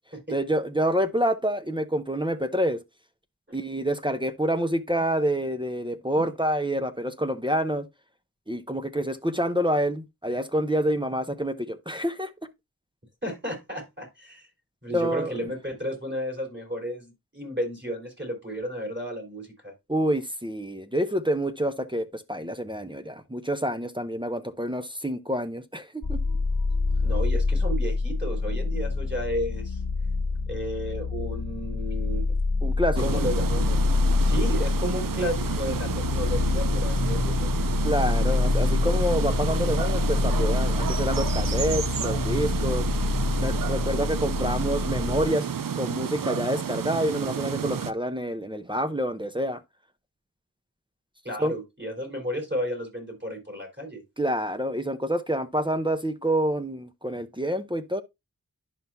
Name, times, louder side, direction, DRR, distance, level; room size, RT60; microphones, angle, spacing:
voice 1, 0.3-2.8 3.5-7.9 8.5-12.3 14.9-15.4 19.9-26.2 32.6-33.2 37.8-42.9 43.4-45.5 45.7-49.6 51.4-51.5 54.2-58.0, equal, 15° right, 0.8 m, -27 dB
voice 2, 13.2-14.5 14.8-19.7 27.0-29.8 30.5-32.3 33.0-33.9 34.2-37.5 51.2-54.0, equal, 30° right, 4.1 m, -33 dB
sound 1, 26.0-45.3, left 3 dB, 75° left, 1.3 m, -26 dB
sound 2, 32.9-47.9, right 7 dB, 70° right, 0.6 m, -31 dB
11.0 x 5.6 x 2.3 m
wide cardioid pair, 55°, 35 cm